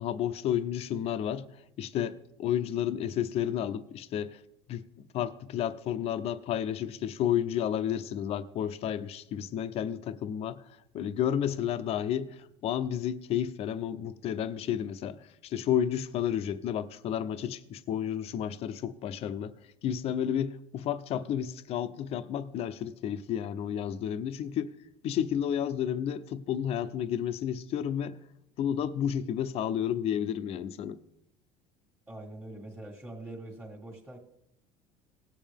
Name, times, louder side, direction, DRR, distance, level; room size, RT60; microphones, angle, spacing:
voice 1, 0.0-1.5 1.8-4.4 4.7-4.9 5.1-10.6 10.9-19.5 19.8-24.7 25.0-28.2 28.6-31.0, left 9 dB, 50° left, 0.7 m, -31 dB
voice 2, 32.1-34.2, right 2 dB, 10° right, 1.7 m, -43 dB
18.5 x 7.4 x 3.5 m
supercardioid pair, 120°, 14 cm